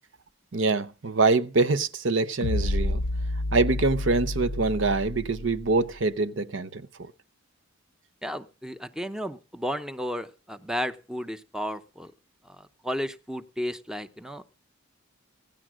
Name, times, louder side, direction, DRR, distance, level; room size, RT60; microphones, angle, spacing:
voice 1, 0.5-3.0 3.5-7.1, right 3 dB, 60° right, 0.8 m, -25 dB
sound 1, 2.4-5.8, left 1 dB, 85° left, 0.6 m, -29 dB
voice 2, 8.2-12.1 12.4-14.4, equal, 5° right, 0.7 m, -33 dB
16.5 x 10.0 x 6.2 m
head